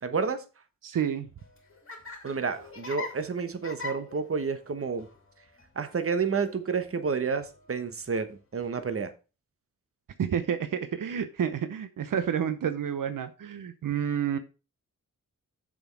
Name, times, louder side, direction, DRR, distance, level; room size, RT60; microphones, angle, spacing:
voice 1, 0.0-0.4 2.2-5.1 5.7-9.1, right 5 dB, 45° right, 1.2 m, -30 dB
voice 2, 0.8-1.3 10.2-14.4, right 8 dB, 85° right, 0.8 m, -29 dB
Laughter, 1.3-8.8, left 3 dB, 40° left, 2.4 m, -45 dB
7.0 x 6.4 x 4.6 m
wide cardioid pair, 100°, 32 cm